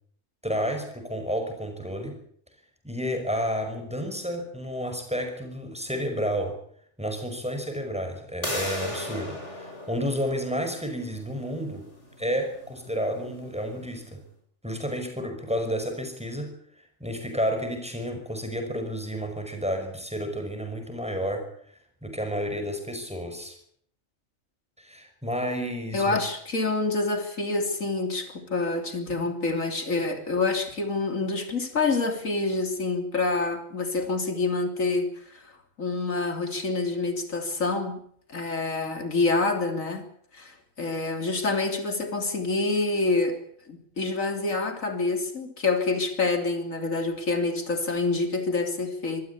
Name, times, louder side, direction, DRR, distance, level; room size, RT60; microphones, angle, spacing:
voice 1, 0.4-2.2 2.8-6.6 7.0-11.9 12.2-14.2 14.6-16.5 17.0-21.5 22.0-23.6 24.8-26.2, equal, 5° right, 5 dB, 5.6 m, -31 dB
sound 1, 8.4-14.0, left 1 dB, 60° left, 6.4 m, -38 dB
voice 2, 25.9-35.5 35.8-38.0 38.3-40.1 40.3-43.4 43.7-49.3, left 3 dB, 85° left, 5 dB, 3.6 m, -27 dB
25.5 x 15.5 x 8.4 m, 0.66 s
omnidirectional pair, 1.3 m